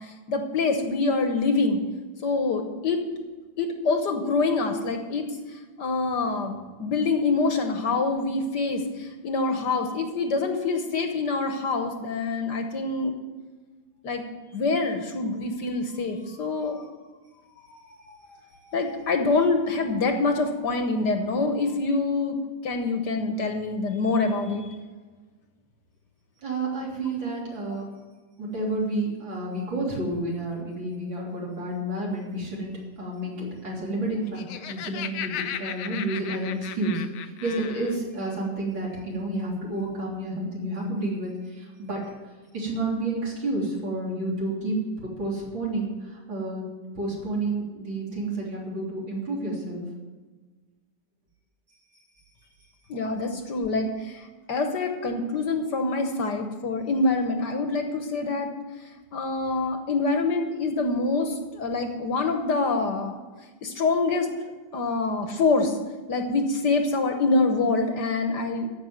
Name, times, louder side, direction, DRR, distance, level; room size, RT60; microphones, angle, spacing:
voice 1, 0.0-1.8 2.2-3.0 3.6-13.2 14.0-14.2 14.5-17.0 17.7-18.4 18.7-24.8 52.9-58.5 59.1-63.2 63.6-64.4 64.7-65.8 66.1-68.7, left 3 dB, 60° left, 5 dB, 1.5 m, -26 dB
voice 2, 26.4-27.8 28.4-42.0 42.5-44.8 45.2-46.6 47.0-49.8, right 2 dB, 65° right, -3 dB, 4.1 m, -30 dB
Laughter, 34.1-38.0, left 10 dB, 90° left, 1.6 m, -36 dB
14.0 x 6.0 x 9.0 m, 1.3 s
omnidirectional pair, 2.3 m